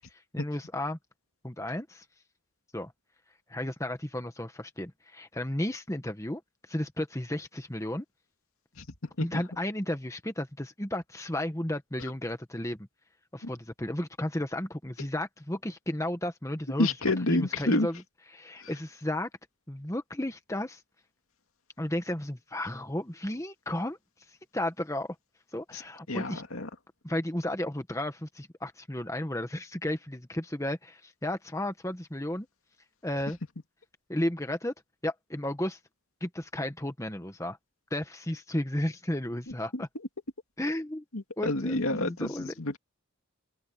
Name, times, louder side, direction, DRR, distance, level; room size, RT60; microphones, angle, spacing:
voice 1, 0.1-1.0 1.4-2.0 2.7-2.9 3.5-6.4 6.7-8.0 9.2-12.9 13.3-16.9 17.3-17.9 18.3-19.3 19.7-20.8 21.8-24.0 24.3-25.2 25.5-26.4 27.0-32.5 33.0-33.4 34.1-34.7 35.0-35.8 36.2-37.6 37.9-39.9 40.6-41.0 41.4-42.5, left 1 dB, 15° left, 1.3 m, -33 dB
voice 2, 16.8-17.9 18.6-18.7 25.7-25.8 26.1-26.7 39.5-39.8 41.1-42.8, left 2 dB, 75° left, 2.4 m, -29 dB
head